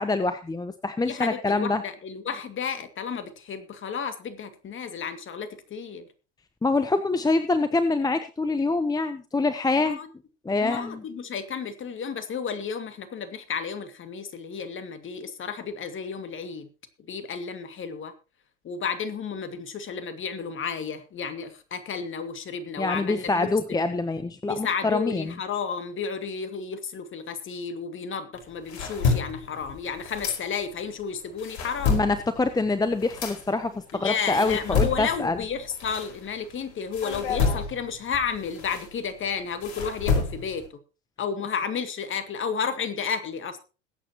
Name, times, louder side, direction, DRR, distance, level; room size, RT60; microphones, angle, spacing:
voice 1, 0.0-1.8 6.6-10.0 10.4-11.0 22.8-25.3 31.9-35.4, left 3 dB, 10° left, 0.9 m, -25 dB
voice 2, 1.0-6.1 9.8-10.1 10.5-16.7 17.1-18.1 18.6-23.9 24.4-32.0 34.0-40.6 41.2-43.6, left 6 dB, 35° left, 2.4 m, -32 dB
sound 1, 28.3-30.9 31.2-36.5 36.9-40.7, left 5 dB, 65° left, 5.1 m, -29 dB
21.5 x 8.7 x 3.0 m
hypercardioid pair, 90°, 36 cm